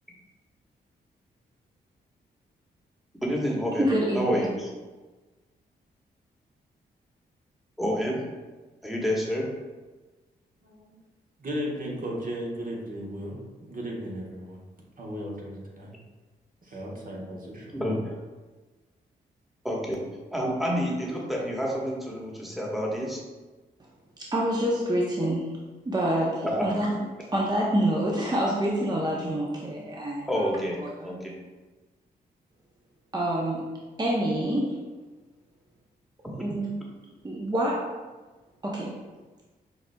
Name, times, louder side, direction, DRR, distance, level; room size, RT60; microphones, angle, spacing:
voice 1, 3.2-3.9 4.1-4.7 7.8-8.2 8.8-9.4 17.7-18.2 19.6-20.0 20.3-23.2 26.4-26.7 30.3-31.3, equal, ahead, -3 dB, 1.2 m, -28 dB
voice 2, 3.8-4.4 24.3-25.5 25.8-26.9 27.3-30.5 30.8-31.1 33.1-33.7 34.0-34.8 36.4-36.8 37.2-37.8 38.6-38.9, right 1 dB, 20° right, -3 dB, 0.7 m, -27 dB
voice 3, 10.6-10.9 11.4-14.6 15.0-15.9 16.6-17.8, equal, 45° right, -3 dB, 1.2 m, -35 dB
5.9 x 2.4 x 2.2 m, 1.2 s
hypercardioid pair, 40°, 20 cm